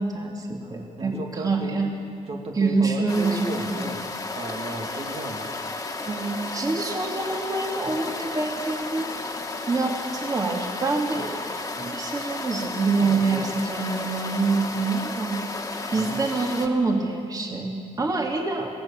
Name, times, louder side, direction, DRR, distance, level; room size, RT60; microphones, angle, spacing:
voice 1, 0.0-1.9 2.6-3.8 4.9-5.0 6.0-9.1 9.7-15.4 15.9-18.7, right 3 dB, 30° right, 1 dB, 2.5 m, -26 dB
voice 2, 0.6-1.8 2.3-4.1 4.3-5.5 13.0-13.5 15.9-16.3, right 2 dB, 50° right, 1 dB, 2.7 m, -35 dB
sound 1, 3.1-16.7, left 3 dB, 25° left, 2.0 m, -33 dB
25.5 x 18.0 x 7.3 m, 2.2 s
cardioid pair, 115°, 13 cm